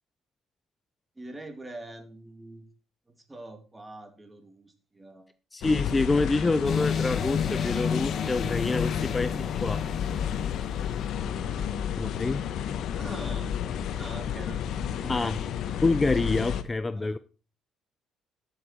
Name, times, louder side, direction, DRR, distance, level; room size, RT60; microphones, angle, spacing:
voice 1, 1.2-2.7 3.1-5.3 11.4-11.6 12.9-13.6 14.0-14.6 15.0-15.5 16.9-17.2, right 2 dB, 15° right, 2.4 m, -44 dB
voice 2, 5.5-9.9 12.0-12.4 15.1-15.4 15.8-17.2, left 3 dB, 20° left, 0.5 m, -27 dB
sound 1, 5.6-16.6, left 9 dB, 70° left, 1.1 m, -31 dB
sound 2, 6.6-11.0, left 7 dB, 50° left, 1.3 m, -32 dB
14.0 x 6.9 x 4.3 m
cardioid pair, 95°, 0 cm